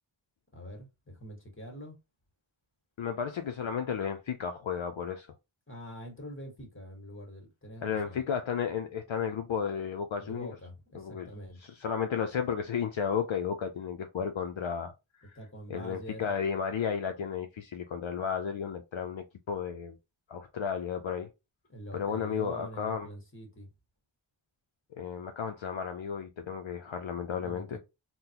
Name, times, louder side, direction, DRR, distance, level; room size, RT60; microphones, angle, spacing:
voice 1, 0.5-2.0 5.7-8.2 10.2-11.6 15.3-16.3 21.7-23.7 27.4-27.8, equal, 25° left, 1.4 m, -45 dB
voice 2, 3.0-5.3 7.8-10.6 10.9-11.3 11.6-14.9 15.2-15.4 15.7-19.9 20.3-21.3 21.9-23.1 25.0-27.8, left 7 dB, 65° left, 0.5 m, -33 dB
3.7 x 2.1 x 2.8 m
wide cardioid pair, 40°, 50 cm